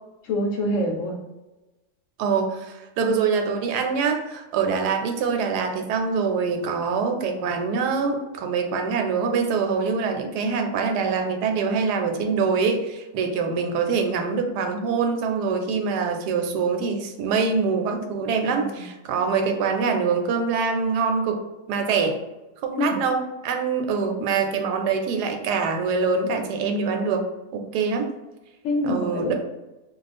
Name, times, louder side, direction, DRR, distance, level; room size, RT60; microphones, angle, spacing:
voice 1, 0.2-1.2 18.4-18.9 22.8-23.0 24.2-24.3 28.6-29.3, left 1 dB, 65° left, -1 dB, 0.9 m, -26 dB
voice 2, 2.2-21.4 21.7-22.2 22.6-27.2 27.5-28.1 28.8-29.3, right 5 dB, 90° right, 4 dB, 1.1 m, -24 dB
2.4 x 2.3 x 4.0 m, 1.1 s
omnidirectional pair, 1.7 m